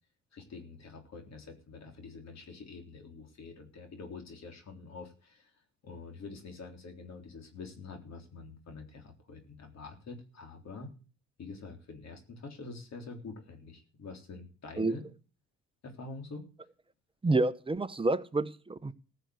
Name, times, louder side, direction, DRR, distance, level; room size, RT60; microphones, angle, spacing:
voice 1, 0.3-5.5 5.8-10.9 11.4-15.1 15.8-16.5, left 4 dB, 60° left, 5 dB, 3.7 m, -46 dB
voice 2, 17.2-18.9, right 2 dB, 15° right, 12 dB, 0.9 m, -29 dB
15.0 x 7.0 x 7.8 m, 0.36 s
cardioid pair, 90°, 30 cm